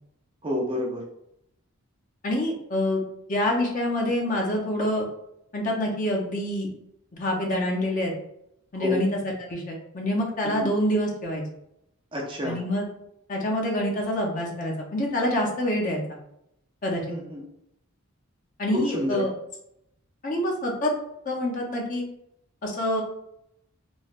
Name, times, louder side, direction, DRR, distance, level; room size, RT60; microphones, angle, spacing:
voice 1, 0.4-1.0 8.7-9.0 10.4-10.7 12.1-12.6 17.1-17.4 18.7-19.3, left 1 dB, 25° right, -1 dB, 0.4 m, -29 dB
voice 2, 2.2-3.0 3.3-5.1 5.5-6.7 7.1-8.1 8.7-11.4 12.4-12.8 13.3-16.0 16.8-17.0 18.6-19.3 20.2-20.9 21.2-22.0 22.6-23.0, left 1 dB, 40° left, -1 dB, 0.6 m, -26 dB
3.2 x 2.2 x 2.4 m, 0.78 s
head